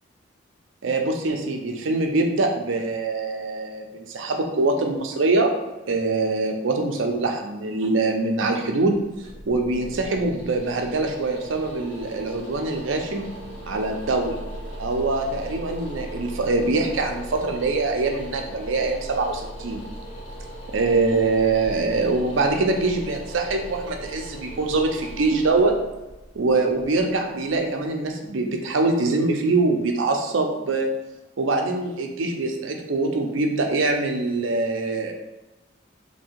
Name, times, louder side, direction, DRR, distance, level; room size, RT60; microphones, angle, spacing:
voice 1, 0.8-5.5 5.9-9.0 9.5-13.3 13.7-14.4 14.8-19.9 20.7-25.8 26.3-30.9 31.4-35.1, right 3 dB, 80° right, 3 dB, 0.5 m, -23 dB
sound 1, 9.1-27.8, right 1 dB, 85° left, 1.4 m, -39 dB
2.8 x 2.7 x 4.3 m, 1.0 s
head